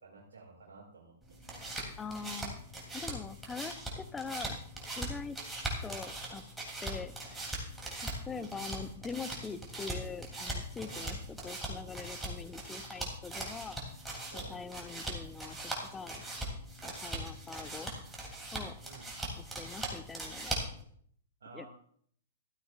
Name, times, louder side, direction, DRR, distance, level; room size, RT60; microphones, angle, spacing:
voice 1, 0.0-1.4 8.3-8.7 10.8-11.2 14.3-14.6 18.8-19.1 21.4-21.7, right 4 dB, 65° right, -4 dB, 2.2 m, -52 dB
sound 1, 1.2-20.8, right 1 dB, 5° right, 3.1 m, -40 dB
voice 2, 2.0-2.6 2.9-4.6 5.0-5.4 5.8-6.4 6.8-7.1 8.3-13.8 14.3-16.2 16.8-17.9 18.5-18.8 19.4-20.6 21.5-21.7, left 5 dB, 15° left, 13 dB, 0.7 m, -43 dB
14.5 x 13.5 x 2.5 m, 0.62 s
figure-of-eight pair, 105°, 0 cm